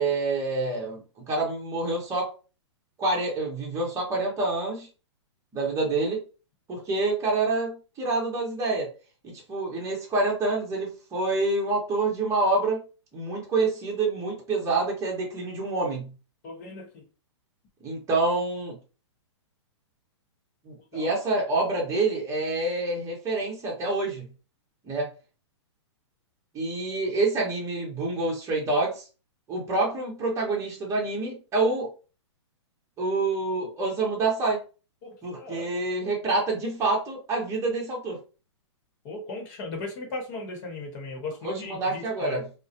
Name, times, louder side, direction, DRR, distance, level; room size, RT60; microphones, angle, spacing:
voice 1, 0.0-2.3 3.0-4.9 5.5-6.2 6.7-8.9 9.2-12.8 13.1-16.1 17.8-18.8 20.6-24.3 24.8-25.1 26.5-29.0 29.5-31.9 33.0-34.6 35.2-38.2 41.4-42.4, right 3 dB, 20° right, -2 dB, 1.0 m, -27 dB
voice 2, 16.4-17.0 20.9-21.2 35.0-35.8 39.0-42.4, left 2 dB, 40° left, 3 dB, 1.0 m, -37 dB
2.3 x 2.1 x 2.8 m, 0.34 s
hypercardioid pair, 125°, 15 cm